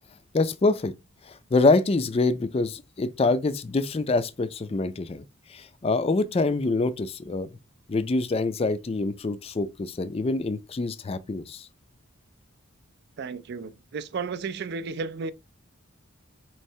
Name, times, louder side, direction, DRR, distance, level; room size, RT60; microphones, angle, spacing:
voice 1, 0.3-0.9 1.3-5.2 5.5-7.5 7.9-11.7, left 3 dB, 30° left, 0.4 m, -25 dB
voice 2, 13.2-15.3, right 4 dB, 50° right, 0.4 m, -33 dB
4.4 x 3.1 x 2.7 m
head